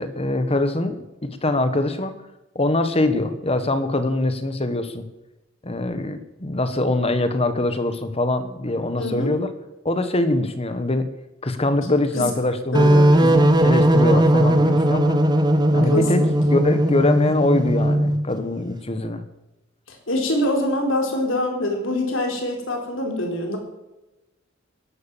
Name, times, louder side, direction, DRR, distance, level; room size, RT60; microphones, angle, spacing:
voice 1, 0.0-2.1 2.5-5.1 5.6-9.5 9.8-11.1 11.4-15.2 15.7-19.2, left 2 dB, 30° left, 10 dB, 1.5 m, -23 dB
voice 2, 9.0-9.3 12.2-12.3 12.7-13.5 15.9-16.3 19.9-23.6, left 1 dB, 70° left, 2 dB, 4.1 m, -24 dB
sound 1, 12.7-18.2, right 1 dB, 20° right, 1.4 m, -17 dB
14.5 x 11.5 x 7.3 m, 1.0 s
head